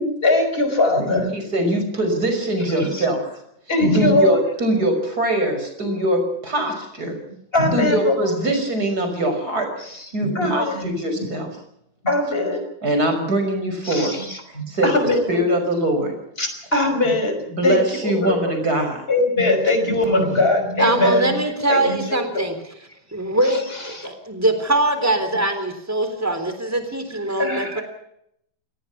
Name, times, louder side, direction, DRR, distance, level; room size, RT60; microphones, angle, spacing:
voice 1, 0.0-1.3 2.8-3.1 3.7-4.4 7.5-8.2 9.8-10.9 12.0-12.6 13.8-15.4 16.4-17.4 17.6-18.6 19.1-21.4 21.7-22.5 23.5-24.1 27.4-27.8, left 2 dB, 30° left, 6 dB, 5.6 m, -21 dB
voice 2, 1.3-3.2 3.9-7.2 7.7-11.5 12.8-14.2 14.7-14.9 15.3-16.1 17.5-19.0, right 1 dB, 55° right, 5 dB, 6.4 m, -22 dB
voice 3, 20.8-22.5 23.1-27.8, right 1 dB, 10° right, 8 dB, 3.6 m, -22 dB
27.5 x 18.5 x 5.9 m, 0.75 s
omnidirectional pair, 2.0 m